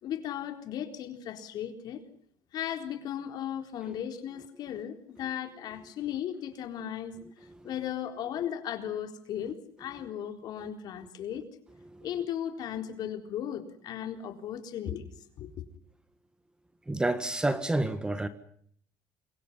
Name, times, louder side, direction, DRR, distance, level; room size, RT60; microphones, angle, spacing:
voice 1, 0.0-2.0 2.5-7.2 7.6-11.4 12.0-15.1 15.4-15.6, left 10 dB, 55° left, 4.1 m, -36 dB
voice 2, 16.9-18.3, right 2 dB, 10° right, 1.6 m, -29 dB
28.5 x 24.5 x 5.6 m
cardioid pair, 125°, 8 cm